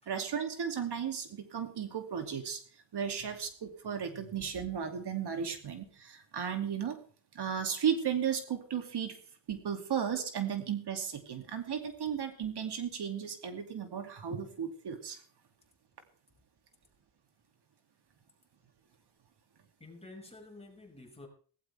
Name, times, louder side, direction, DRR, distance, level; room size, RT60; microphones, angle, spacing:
voice 1, 0.1-2.6 2.9-7.0 7.3-9.2 9.5-15.2, right 8 dB, 65° right, 6 dB, 2.8 m, -35 dB
voice 2, 19.8-21.3, left 2 dB, 15° left, 1 dB, 5.9 m, -50 dB
17.5 x 17.0 x 3.5 m, 0.43 s
wide cardioid pair, 130°, 43 cm